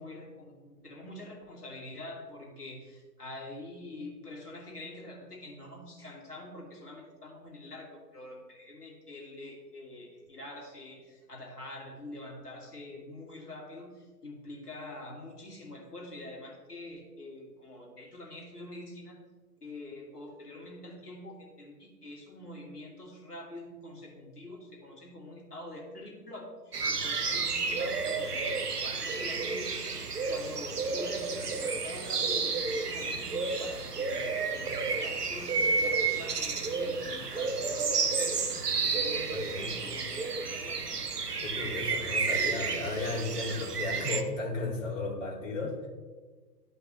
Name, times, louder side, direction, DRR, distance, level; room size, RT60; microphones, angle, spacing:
voice 1, 0.0-19.2 19.6-30.0 30.3-38.5 38.7-40.8, left 1 dB, 70° left, -1 dB, 2.3 m, -45 dB
sound 1, 26.7-44.2, right 4 dB, 75° right, 0.9 m, -31 dB
voice 2, 41.4-45.9, left 2 dB, 50° left, -3 dB, 2.5 m, -34 dB
12.5 x 5.1 x 2.9 m, 1.4 s
figure-of-eight pair, 120°, 47 cm